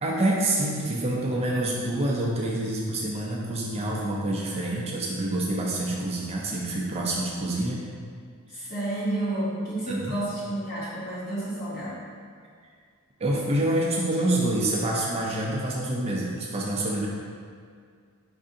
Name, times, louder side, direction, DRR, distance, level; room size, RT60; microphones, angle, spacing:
voice 1, 0.0-7.8 8.5-8.7 9.9-10.1 13.2-17.1, right 1 dB, 30° right, -3 dB, 0.4 m, -27 dB
voice 2, 8.5-12.0, right 1 dB, 40° left, -9 dB, 1.4 m, -30 dB
5.3 x 2.6 x 3.7 m, 2.1 s
head